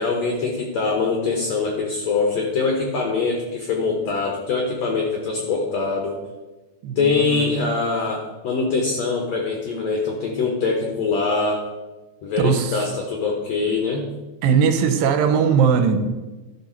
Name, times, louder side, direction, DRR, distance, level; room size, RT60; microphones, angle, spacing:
voice 1, 0.0-6.2 7.0-11.6 12.2-14.1, left 4 dB, 70° left, 1 dB, 1.6 m, -23 dB
voice 2, 6.8-7.6 12.4-12.9 14.4-16.0, right 6 dB, 80° right, 7 dB, 2.5 m, -19 dB
12.0 x 5.7 x 4.4 m, 1.2 s
omnidirectional pair, 4.2 m